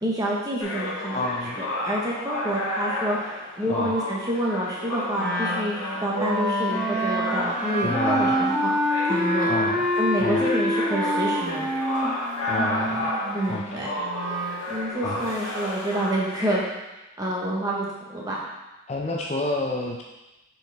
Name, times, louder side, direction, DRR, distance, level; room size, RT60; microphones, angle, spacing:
voice 1, 0.0-1.3 1.6-3.3 3.6-8.7 9.1-9.5 9.9-11.7 13.3-13.9 14.7-16.6 17.2-18.4, right 1 dB, 15° right, -3 dB, 1.0 m, -28 dB
sound 1, 0.6-16.6, left 1 dB, 85° left, 1.5 m, -32 dB
voice 2, 1.1-1.6 3.7-3.9 7.8-8.3 9.5-9.8 10.2-10.5 12.5-13.1 13.5-13.9 15.0-15.3 18.9-20.0, left 2 dB, 30° left, 0 dB, 0.4 m, -29 dB
Wind instrument woodwind instrument, 5.1-14.6, equal, ahead, 1.8 m, -26 dB
6.8 x 4.8 x 3.4 m, 1.0 s
head